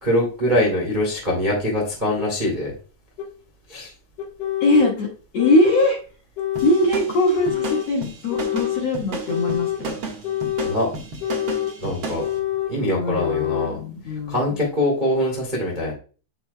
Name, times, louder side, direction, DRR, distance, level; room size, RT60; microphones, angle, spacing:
voice 1, 0.0-2.7 3.7-3.9 10.6-10.9 11.8-12.2 12.7-13.8 14.3-15.9, left 1 dB, 20° right, -2 dB, 1.2 m, -23 dB
sound 1, 2.2-2.3 3.2-3.3 4.2-5.0 5.4-5.9 6.4-6.9 7.3-7.9 8.3-8.9 9.3-9.8 10.2-10.8 11.2-11.8 12.2-12.8 13.2-13.7, left 13 dB, 80° left, 1.4 m, -26 dB
voice 2, 4.6-6.0 6.6-10.0 12.8-14.5, left 1 dB, 50° left, -3 dB, 2.1 m, -21 dB
sound 2, 6.5-12.3, right 3 dB, 70° right, 1.2 m, -32 dB
8.4 x 6.8 x 2.3 m, 0.36 s
omnidirectional pair, 5.1 m